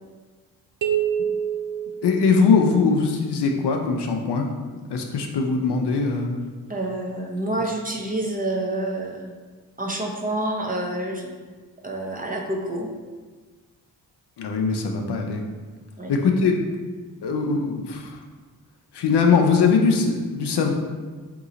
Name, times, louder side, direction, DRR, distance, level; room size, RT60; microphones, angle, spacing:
sound 1, 0.8-2.8, right 9 dB, 75° right, 0.6 m, -26 dB
voice 1, 2.0-4.5 4.9-6.4 14.4-15.4 16.1-16.5 17.2-18.2 18.9-20.7, left 5 dB, 65° left, 3 dB, 0.7 m, -21 dB
voice 2, 6.7-9.3 9.8-11.3 11.8-12.9 16.0-16.1, right 1 dB, 20° right, 0 dB, 0.8 m, -28 dB
3.7 x 3.0 x 3.9 m, 1.4 s
supercardioid pair, 45°, 44 cm